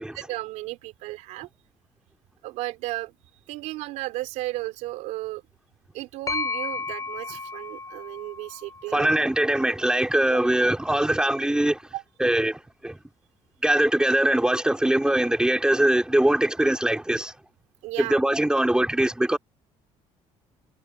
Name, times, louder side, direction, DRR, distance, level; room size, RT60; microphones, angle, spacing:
voice 1, 0.0-1.5 2.4-3.1 3.5-5.4 5.9-9.1 10.3-10.4 11.9-12.0 17.8-18.2, right 18 dB, 90° right, 4.1 m, -34 dB
sound 1, 6.3-10.0, left 4 dB, 30° left, 3.4 m, -34 dB
voice 2, 8.9-11.8 12.2-13.0 13.6-17.3 18.0-19.4, right 1 dB, 5° right, 3.5 m, -22 dB
cardioid pair, 95°, 12 cm